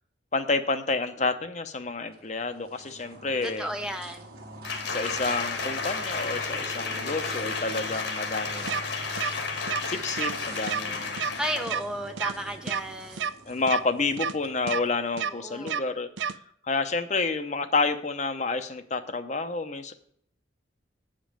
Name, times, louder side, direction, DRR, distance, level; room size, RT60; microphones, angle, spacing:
voice 1, 0.3-3.7 4.9-8.8 9.9-11.2 13.5-16.1 16.6-19.9, left 3 dB, 35° left, 9 dB, 0.7 m, -29 dB
sound 1, 2.0-15.4, right 1 dB, 50° right, 1.5 m, -45 dB
voice 2, 3.4-4.3 11.1-13.3 15.3-15.9, right 1 dB, 5° right, 6 dB, 0.5 m, -34 dB
Applause, 4.6-11.8 12.2-12.3, left 4 dB, 65° left, 1.5 m, -32 dB
sound 2, 8.7-8.8 9.2-9.3 9.7-9.8 10.2-10.3 10.7-10.8 11.2-11.3 11.7-11.8 12.2-12.3 12.7-12.8 13.2-13.3 13.7-13.8 14.2-14.3 14.7-14.8 15.2-15.3 15.7-15.8 16.2-16.3, right 7 dB, 70° right, 0.4 m, -29 dB
9.3 x 5.2 x 7.3 m, 0.64 s
head